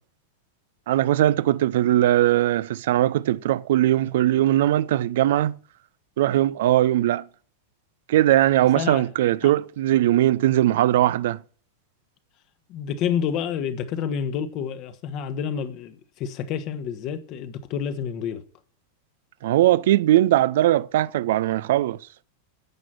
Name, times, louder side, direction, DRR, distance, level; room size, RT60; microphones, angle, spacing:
voice 1, 0.9-5.6 6.2-7.2 8.1-11.4 19.4-22.0, right 13 dB, 55° right, 0.5 m, -20 dB
voice 2, 8.7-9.1 9.4-9.5 12.7-18.4, left 8 dB, 40° left, 1.5 m, -29 dB
11.0 x 7.6 x 8.7 m
figure-of-eight pair, 90°, 0 cm